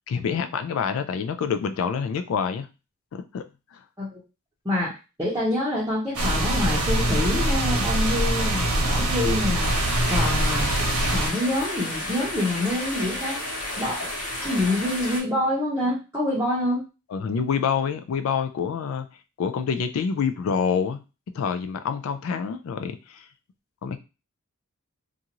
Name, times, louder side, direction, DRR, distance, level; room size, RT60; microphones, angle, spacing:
voice 1, 0.0-2.7 3.1-3.8 17.1-19.1 19.4-21.0 21.3-23.3 23.8-24.0, left 6 dB, 65° left, 9 dB, 0.3 m, -27 dB
voice 2, 4.6-9.7 10.1-10.7 11.1-13.4 13.8-14.1 14.4-16.9, left 1 dB, 10° right, -9 dB, 0.8 m, -26 dB
sound 1, 6.1-11.3, right 1 dB, 85° right, 0.9 m, -23 dB
sound 2, 9.6-15.2, left 1 dB, 90° left, 1.1 m, -31 dB
2.6 x 2.4 x 2.9 m, 0.29 s
head